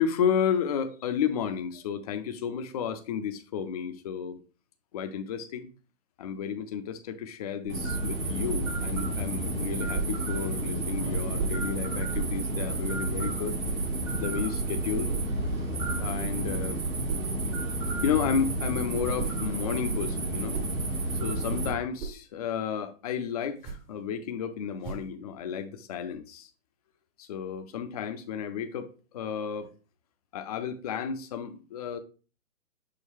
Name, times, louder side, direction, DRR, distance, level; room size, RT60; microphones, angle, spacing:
voice 1, 0.0-4.4 4.9-5.7 6.2-13.6 14.2-15.1 16.0-16.8 18.0-20.6 21.2-26.5 27.2-28.9 29.1-29.7 30.3-32.0, left 7 dB, 30° left, 0.4 m, -32 dB
sound 1, 7.7-21.7, right 2 dB, 85° right, 2.3 m, -30 dB
sound 2, 9.9-10.2 11.4-11.7 12.1-12.4 13.6-13.9 15.1-15.4 17.1-17.3 18.9-19.5 20.3-21.2 21.7-22.3 23.5-24.0 24.8-25.2, right 5 dB, 15° right, 0.6 m, -38 dB
6.3 x 2.2 x 3.6 m
figure-of-eight pair, 125°, 39 cm